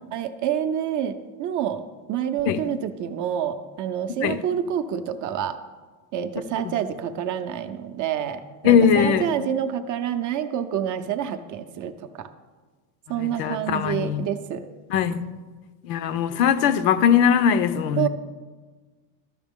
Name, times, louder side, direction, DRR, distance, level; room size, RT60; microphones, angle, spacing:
voice 1, 0.1-1.8 2.1-5.6 6.1-12.3 13.1-14.6 18.0-18.1, right 9 dB, 40° right, 0.5 m, -27 dB
voice 2, 8.6-9.3 13.2-14.3 14.9-15.2 15.8-18.1, left 8 dB, 75° left, 0.7 m, -20 dB
12.5 x 5.9 x 3.6 m
supercardioid pair, 130°, 49 cm